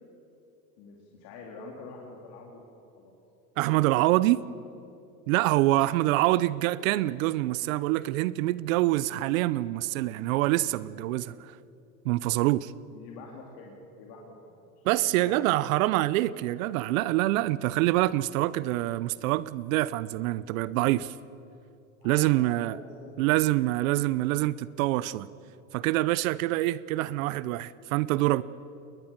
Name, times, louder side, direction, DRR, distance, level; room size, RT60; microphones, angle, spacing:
voice 1, 0.8-2.6 3.0-3.1 5.7-6.1 12.9-15.5 22.0-23.3 23.9-24.1, left 3 dB, 60° left, 3.6 m, -46 dB
voice 2, 3.6-4.4 5.3-11.5 12.0-12.7 14.8-21.1 22.0-22.8 23.2-25.3 25.7-28.4, right 17 dB, 70° right, 0.7 m, -25 dB
21.0 x 20.5 x 7.5 m
hypercardioid pair, 100°, 43 cm